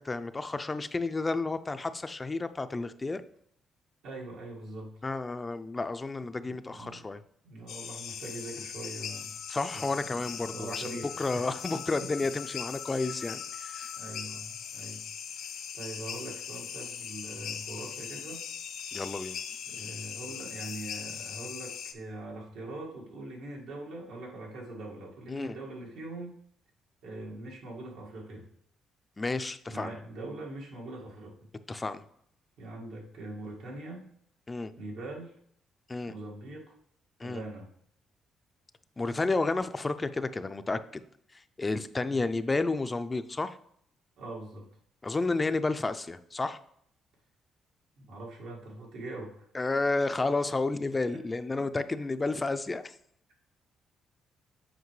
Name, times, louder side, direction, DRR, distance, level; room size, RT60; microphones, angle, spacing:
voice 1, 0.0-3.2 5.0-7.2 9.5-10.8 11.2-13.9 18.9-19.4 25.3-25.5 29.2-29.9 31.7-32.0 34.5-34.7 35.9-36.1 37.2-37.4 39.0-41.0 41.6-43.6 45.0-46.6 49.5-52.9, left 3 dB, 25° left, 11 dB, 0.4 m, -31 dB
voice 2, 4.0-4.9 6.4-7.1 7.4-9.4 9.7-11.4 12.0-12.1 13.0-13.4 13.9-15.1 15.7-18.5 19.6-26.3 27.0-28.5 29.7-31.5 32.6-34.1 34.8-35.3 36.1-36.7 37.2-37.7 42.0-42.3 44.2-44.7 48.0-49.5 51.1-51.2 52.0-52.1, right 2 dB, 90° right, -3 dB, 1.8 m, -42 dB
sound 1, 7.7-21.9, left 8 dB, 75° left, 0.5 m, -40 dB
8.0 x 4.6 x 3.2 m, 0.68 s
cardioid pair, 90°, 0 cm